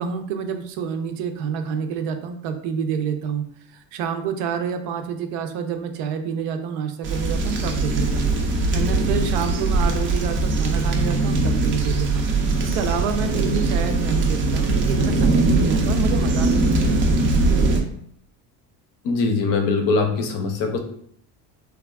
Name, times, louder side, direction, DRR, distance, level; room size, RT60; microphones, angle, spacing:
voice 1, 0.0-3.4 3.7-8.3 8.7-17.3 17.7-17.9, right 6 dB, 85° right, 7 dB, 0.6 m, -28 dB
sound 1, 7.0-17.8, right 2 dB, 30° right, 0.4 m, -21 dB
voice 2, 19.0-20.8, left 4 dB, 50° left, 4 dB, 0.6 m, -22 dB
3.2 x 2.3 x 2.3 m, 0.66 s
cardioid pair, 135°, 43 cm